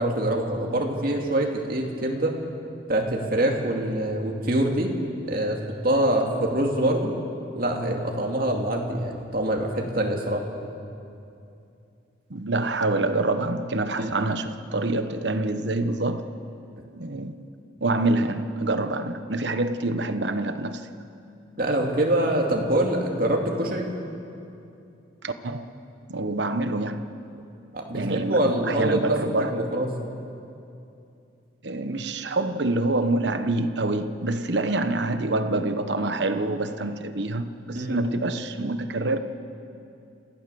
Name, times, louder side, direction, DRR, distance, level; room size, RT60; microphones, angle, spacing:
voice 1, 0.0-2.3 2.9-4.9 5.3-7.1 7.5-10.4 14.0-14.1 21.6-23.9 27.7-29.1 29.5-29.9 37.7-38.0, right 1 dB, 50° right, 1 dB, 2.5 m, -25 dB
voice 2, 12.3-16.3 16.9-17.3 17.8-20.9 25.2-25.7 26.1-27.1 27.9-29.6 31.6-39.2, right 2 dB, 65° right, 9 dB, 1.1 m, -26 dB
28.5 x 15.5 x 7.0 m, 2.6 s
head